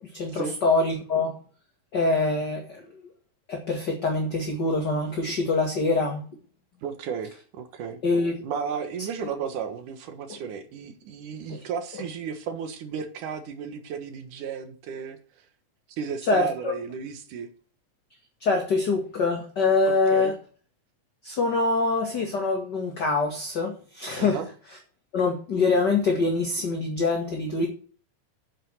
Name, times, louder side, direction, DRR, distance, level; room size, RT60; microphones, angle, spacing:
voice 1, 0.1-1.3 1.9-3.0 3.5-6.2 8.0-8.4 11.5-11.6 16.3-16.5 18.4-20.3 21.2-24.4 25.1-27.7, left 3 dB, 40° left, 1 dB, 2.2 m, -24 dB
voice 2, 6.8-8.0 8.4-15.2 16.0-17.5 20.1-20.3 24.2-24.5, right 6 dB, 80° right, 8 dB, 3.0 m, -34 dB
9.6 x 8.1 x 6.6 m, 0.40 s
omnidirectional pair, 3.5 m